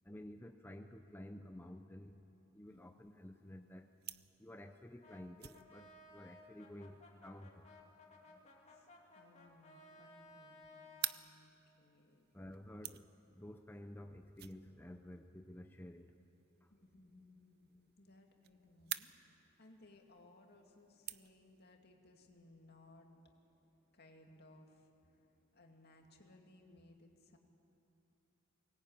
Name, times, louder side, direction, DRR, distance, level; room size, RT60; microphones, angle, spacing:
voice 1, 0.1-2.2 2.5-3.9 4.4-7.7 12.3-13.1 13.3-16.1, left 1 dB, 10° left, 5 dB, 0.6 m, -52 dB
voice 2, 2.6-3.0 8.7-12.3 16.7-17.7 18.0-23.1 23.9-25.2 25.5-27.4, left 2 dB, 55° left, 2 dB, 2.4 m, -63 dB
sound 1, 2.7-21.8, right 14 dB, 50° right, 0.6 m, -52 dB
Brass instrument, 5.0-11.2, left 2 dB, 35° left, 2.7 m, -59 dB
23.0 x 19.0 x 9.1 m, 2.9 s
head